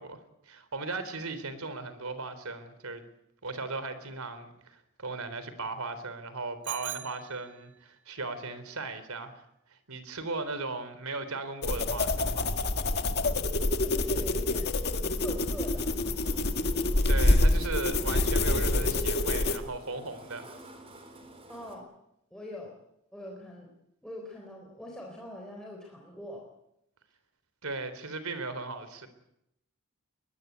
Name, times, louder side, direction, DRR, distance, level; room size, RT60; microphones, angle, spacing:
voice 1, 0.0-3.0 3.4-9.4 9.7-12.5 17.1-20.5 27.6-29.1, right 3 dB, 75° right, 12 dB, 3.6 m, -37 dB
Bicycle bell, 6.6-7.9, right 13 dB, 55° right, 1.2 m, -41 dB
sound 1, 11.6-19.6, left 2 dB, 45° left, 1.7 m, -26 dB
voice 2, 13.8-14.7 15.1-15.9 21.5-21.9 22.3-22.7 23.1-23.7 24.0-26.4, left 1 dB, 5° left, -1 dB, 4.0 m, -43 dB
sound 2, 15.3-21.8, right 1 dB, 25° right, 4.0 m, -51 dB
22.0 x 21.5 x 9.4 m, 0.82 s
head